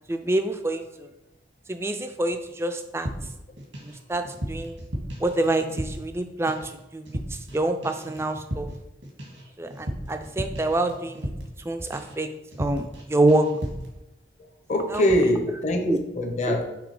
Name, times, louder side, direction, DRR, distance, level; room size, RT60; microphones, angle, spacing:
voice 1, 0.1-1.1 1.7-3.1 3.8-4.8 5.2-8.7 9.6-11.3 11.6-12.3 12.6-13.5 14.9-15.1 15.9-16.0 16.4-16.6, right 2 dB, 15° right, 7 dB, 0.4 m, -26 dB
sound 1, 3.1-4.0 4.2-6.2 6.5-6.8 7.1-7.6 7.8-11.6 11.9-12.2 12.5-13.0 13.3-13.9, equal, 85° right, 1.8 m, -34 dB
voice 2, 14.7-16.6, left 1 dB, 40° left, 4 dB, 0.7 m, -23 dB
6.0 x 3.6 x 4.8 m, 0.95 s
head